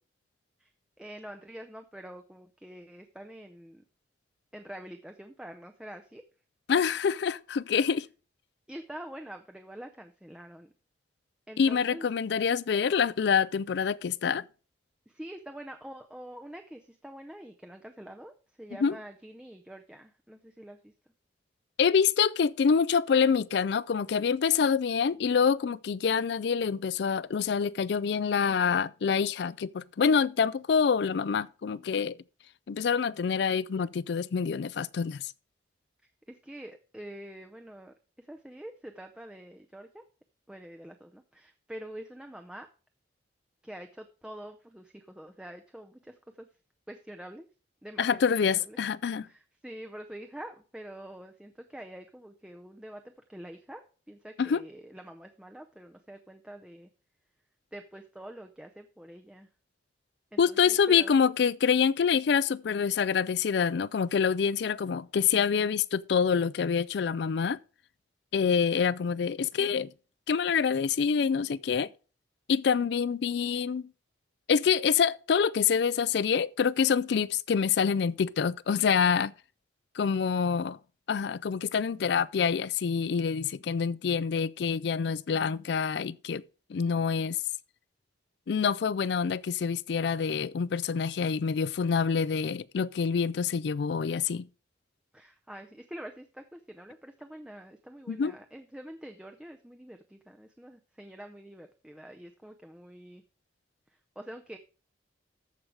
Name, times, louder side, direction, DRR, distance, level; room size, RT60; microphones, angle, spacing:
voice 1, 1.0-3.8 4.5-6.2 8.7-10.7 11.5-12.1 15.1-20.9 36.3-40.0 40.5-42.7 43.6-46.5 46.9-47.5 47.8-48.8 49.2-56.9 57.7-59.5 60.3-61.1 95.1-103.2 103.9-104.6, right 1 dB, 5° right, 0.5 m, -46 dB
voice 2, 6.7-8.1 11.6-14.4 18.8-19.0 21.8-32.2 32.7-35.3 48.0-49.3 54.4-54.6 60.4-67.6 68.3-69.9 70.3-71.9 72.5-73.9 74.5-79.3 80.0-80.8 81.1-86.4 86.7-87.4 88.5-94.5 98.1-98.3, left 6 dB, 60° left, 0.4 m, -26 dB
14.0 x 4.7 x 4.8 m
head